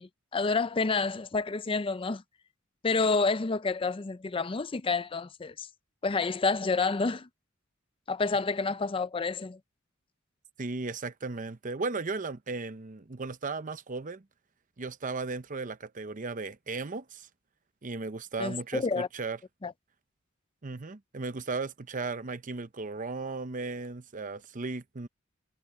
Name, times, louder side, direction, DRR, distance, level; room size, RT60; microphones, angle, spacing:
voice 1, 0.0-2.2 2.8-5.7 6.0-7.3 8.1-9.6 18.4-19.1 19.6-19.7, left 4 dB, 25° left, 0.5 m, -29 dB
voice 2, 10.6-14.2 14.8-17.3 17.8-19.4 20.6-25.1, right 3 dB, 40° right, 0.8 m, -36 dB
head